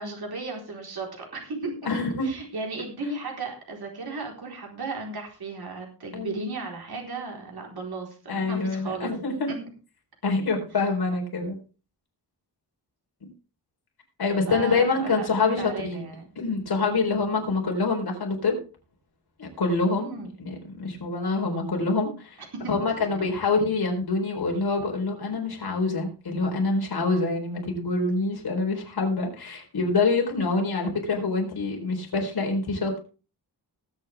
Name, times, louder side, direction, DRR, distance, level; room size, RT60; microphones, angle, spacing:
voice 1, 0.0-1.7 2.2-9.1 9.5-9.6 14.5-16.2 19.9-20.3 22.5-22.7, right 3 dB, 65° right, 1 dB, 4.3 m, -35 dB
voice 2, 1.8-2.3 6.1-6.5 8.3-9.5 10.2-11.6 13.2-13.3 14.2-16.0 16.4-18.6 19.4-22.4 22.7-33.0, left 3 dB, 60° left, 1 dB, 4.4 m, -26 dB
19.5 x 8.3 x 3.5 m, 0.35 s
wide cardioid pair, 170°, 41 cm